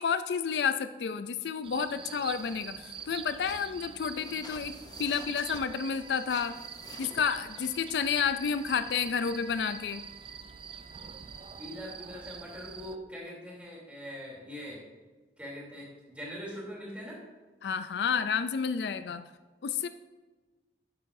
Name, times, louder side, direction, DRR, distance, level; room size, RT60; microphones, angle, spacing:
voice 1, 0.0-6.5 7.0-10.0 17.6-19.2 19.6-19.9, left 6 dB, 70° left, 11 dB, 0.4 m, -30 dB
sound 1, 1.6-13.0, right 7 dB, 30° right, 0.3 m, -45 dB
sound 2, 2.0-8.2, left 3 dB, 25° left, 0.6 m, -51 dB
sound 3, 5.2-11.9, right 2 dB, 50° right, 2.8 m, -56 dB
voice 2, 11.6-14.8 15.4-17.2, equal, 10° right, -5 dB, 3.1 m, -42 dB
12.0 x 8.6 x 2.6 m, 1.3 s
head